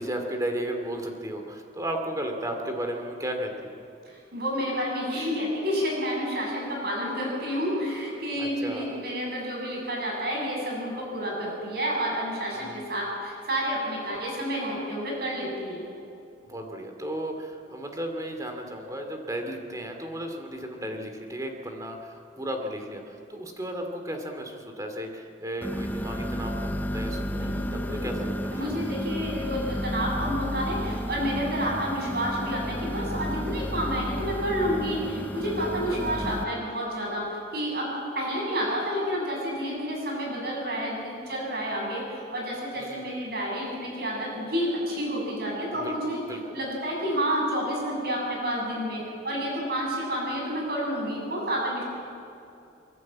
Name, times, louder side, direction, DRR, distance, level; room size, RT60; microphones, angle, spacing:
voice 1, 0.0-3.7 8.4-9.0 12.5-12.8 16.4-28.8 35.8-36.2 42.8-43.2 45.7-46.0 46.2-46.4, right 1 dB, 20° right, 4 dB, 2.4 m, -34 dB
voice 2, 4.1-15.9 27.3-28.1 28.5-46.2 46.5-51.8, equal, 55° right, -2 dB, 7.5 m, -30 dB
sound 1, 25.6-36.4, equal, 10° left, 0.6 m, -32 dB
29.0 x 11.5 x 8.8 m, 2.6 s
head